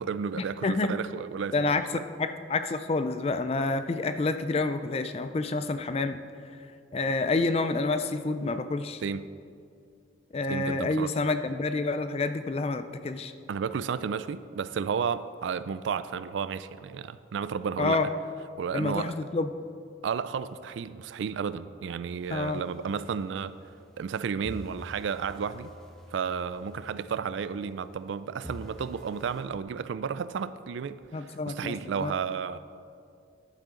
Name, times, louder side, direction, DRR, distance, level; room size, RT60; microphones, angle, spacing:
voice 1, 0.0-2.0 9.0-9.3 10.5-11.1 13.5-18.0 18.5-19.2 20.0-23.5 24.0-25.7 26.1-32.6, right 6 dB, 75° right, 14 dB, 0.3 m, -32 dB
voice 2, 0.6-0.9 1.5-6.2 6.9-9.0 10.3-13.3 17.8-18.1 18.7-19.5 22.3-22.6 31.1-32.1, left 3 dB, 30° left, 10 dB, 0.4 m, -28 dB
sound 1, 22.2-24.1 24.4-28.1 28.4-29.4, equal, 5° left, 0.9 m, -48 dB
11.0 x 8.7 x 3.8 m, 2.4 s
head